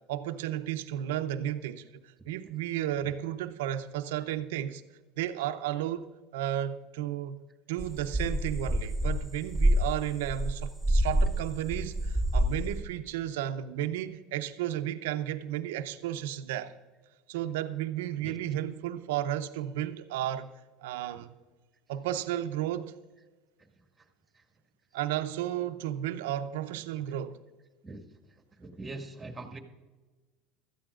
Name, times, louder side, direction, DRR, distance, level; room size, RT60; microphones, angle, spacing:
voice 1, 0.1-1.8 2.3-4.8 5.2-7.4 7.7-16.7 17.3-20.5 20.8-21.3 21.9-22.9 24.9-27.4, right 12 dB, 80° right, 0.7 m, -33 dB
sound 1, 7.8-11.4 11.7-12.8, right 1 dB, 5° left, 2.7 m, -27 dB
voice 2, 28.6-29.6, right 2 dB, 15° right, 1.9 m, -41 dB
17.0 x 13.0 x 2.5 m
supercardioid pair, 100°, 0 cm